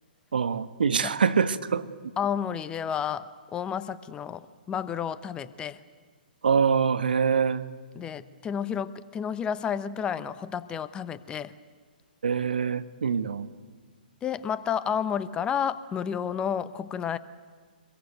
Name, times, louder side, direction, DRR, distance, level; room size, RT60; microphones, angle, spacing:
voice 1, 0.3-1.9 6.4-7.6 12.2-13.5, right 6 dB, 70° right, 13 dB, 1.3 m, -24 dB
voice 2, 2.2-5.8 7.9-11.5 14.2-17.2, left 8 dB, 15° left, 14 dB, 0.9 m, -31 dB
25.5 x 21.5 x 9.3 m, 1.5 s
figure-of-eight pair, 125°, 5 cm